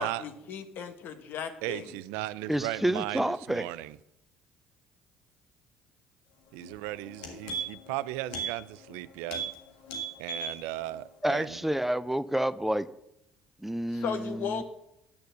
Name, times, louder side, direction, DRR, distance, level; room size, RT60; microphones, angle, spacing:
voice 1, 0.0-1.9 13.9-14.6, left 7 dB, 65° left, 1.3 m, -36 dB
voice 2, 1.6-4.0 6.5-9.4 10.2-11.6, right 16 dB, 85° right, 0.4 m, -36 dB
voice 3, 2.5-3.7 11.2-12.9 13.6-14.6, right 1 dB, 5° right, 0.5 m, -29 dB
sound 1, 6.6-6.7 7.0-7.9 8.3-8.5 8.8-9.0 9.3-9.5 9.8-10.6 10.9-11.0, right 4 dB, 90° left, 1.7 m, -35 dB
9.8 x 6.7 x 6.7 m
supercardioid pair, 65°, 4 cm